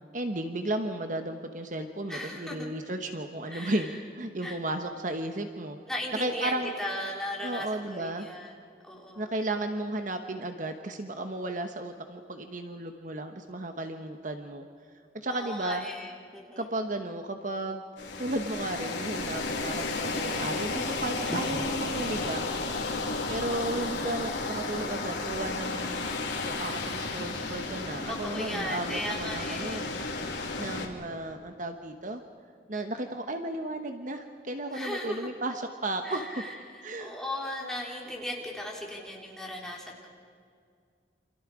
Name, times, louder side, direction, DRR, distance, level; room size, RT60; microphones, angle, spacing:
voice 1, 0.1-5.8 6.2-6.7 7.4-8.3 9.2-14.7 15.1-15.8 16.6-17.8 18.2-22.5 23.3-30.0 30.3-32.2 32.7-36.4 36.8-37.1, right 1 dB, 45° right, 6 dB, 1.2 m, -34 dB
voice 2, 2.1-2.7 3.5-4.0 4.4-4.6 5.9-8.5 8.8-9.3 15.3-16.7 21.2-21.5 22.0-22.1 28.1-29.9 34.7-35.3 36.0-40.1, left 1 dB, 5° left, -3 dB, 3.9 m, -37 dB
sound 1, 18.0-30.9, left 3 dB, 90° left, 2.9 m, -33 dB
29.0 x 26.5 x 5.0 m, 2.2 s
head